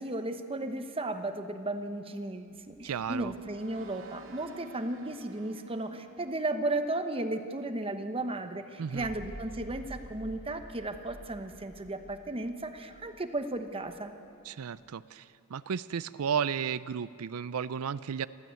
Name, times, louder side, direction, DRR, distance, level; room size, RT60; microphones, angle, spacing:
voice 1, 0.0-14.1, right 2 dB, 25° right, 7 dB, 1.0 m, -35 dB
sound 1, 2.4-7.7, right 2 dB, 60° right, 1.0 m, -52 dB
voice 2, 2.8-3.3 8.8-9.1 14.4-18.3, right 7 dB, 75° right, 16 dB, 0.4 m, -33 dB
sound 2, 9.0-13.5, right 1 dB, 70° left, 5.5 m, -48 dB
28.0 x 12.0 x 8.3 m, 2.6 s
head